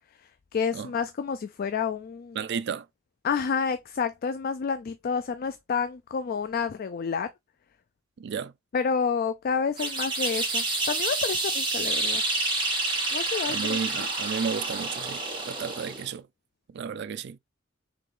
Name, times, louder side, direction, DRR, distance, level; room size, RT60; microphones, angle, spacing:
voice 1, 0.2-2.4 3.2-7.3 8.7-12.2 13.1-13.8, left 6 dB, 50° left, 0.4 m, -29 dB
voice 2, 2.4-2.9 8.2-8.5 13.5-16.3 16.7-17.4, right 6 dB, 60° right, 0.4 m, -33 dB
sound 1, 9.8-16.1, right 2 dB, 25° right, 1.3 m, -28 dB
3.8 x 3.4 x 3.6 m
head